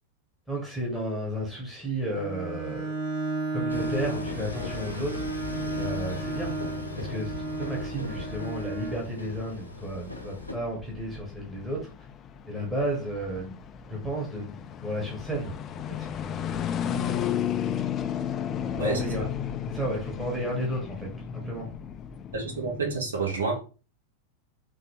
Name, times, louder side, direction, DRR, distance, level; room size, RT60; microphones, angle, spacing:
voice 1, 0.5-2.9 3.5-5.4 5.8-6.5 6.9-11.9 12.5-13.6 13.9-15.5 16.0-16.1 18.8-19.3 19.7-21.7, right 1 dB, 5° right, -3 dB, 1.1 m, -33 dB
Bowed string instrument, 2.0-9.1, right 3 dB, 45° right, 1.6 m, -34 dB
Train, 3.7-10.5, left 3 dB, 90° left, 0.9 m, -37 dB
sound 1, 4.2-23.0, left 9 dB, 30° left, 0.3 m, -35 dB
voice 2, 18.7-19.3 22.3-23.6, right 3 dB, 70° right, 1 dB, 1.2 m, -29 dB
3.8 x 2.6 x 3.3 m, 0.34 s
figure-of-eight pair, 90°, 0 cm